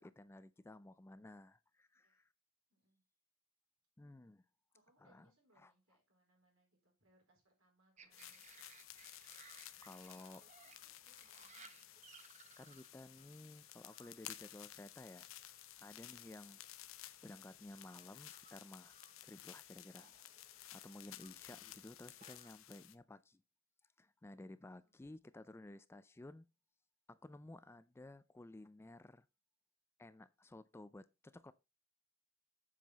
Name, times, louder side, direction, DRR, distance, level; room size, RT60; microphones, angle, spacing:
voice 1, 0.0-2.3 4.0-4.4 5.0-5.3 5.6-5.7 9.5-10.4 12.6-15.3 15.8-17.0 17.2-19.0 19.2-20.1 20.7-23.4 24.0-26.5 27.1-29.3 30.0-31.5, left 2 dB, 10° left, 0.3 m, -55 dB
voice 2, 2.7-3.0 4.7-8.4 10.4-11.9 24.8-25.2, right 1 dB, 75° right, 4.3 m, -76 dB
sound 1, 8.0-22.5, right 6 dB, 35° right, 0.8 m, -65 dB
sound 2, 8.1-22.9, left 13 dB, 75° left, 0.7 m, -55 dB
7.6 x 7.3 x 4.0 m
head